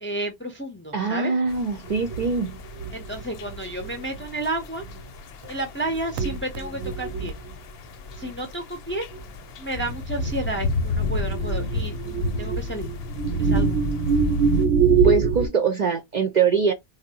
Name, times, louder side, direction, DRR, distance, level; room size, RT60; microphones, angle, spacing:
voice 1, 0.0-1.3 2.9-4.8 5.5-7.4 8.2-9.1 9.6-12.9 13.4-13.8, right 1 dB, 15° left, 0.5 m, -31 dB
voice 2, 0.9-2.6 15.0-16.7, right 5 dB, 50° right, 0.6 m, -23 dB
sound 1, 1.5-14.7, left 3 dB, 70° left, 0.8 m, -33 dB
sound 2, 1.9-4.2 4.8-5.0 5.4-5.5 5.8-7.5 8.1-8.3 9.1-9.2 11.3-15.5, right 5 dB, 85° right, 0.9 m, -24 dB
3.5 x 2.1 x 2.7 m
omnidirectional pair, 1.1 m